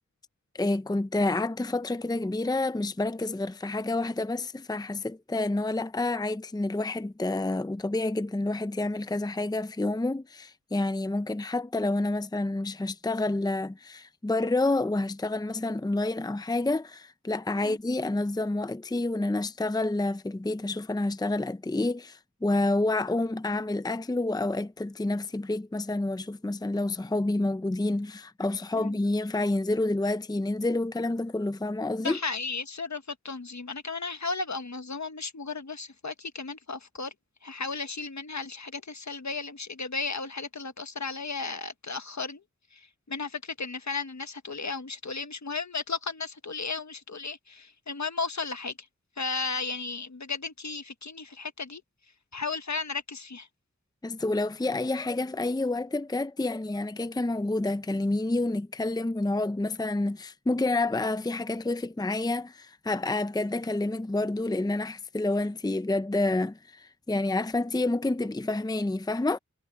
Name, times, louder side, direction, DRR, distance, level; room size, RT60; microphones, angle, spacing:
voice 1, 0.5-32.2 54.0-69.4, left 2 dB, 15° left, 0.6 m, -28 dB
voice 2, 32.0-37.1 37.4-42.4 42.7-42.8 43.1-48.7 49.2-51.8 52.3-53.5, left 4 dB, 65° left, 1.4 m, -34 dB
wide cardioid pair, 55°, 30 cm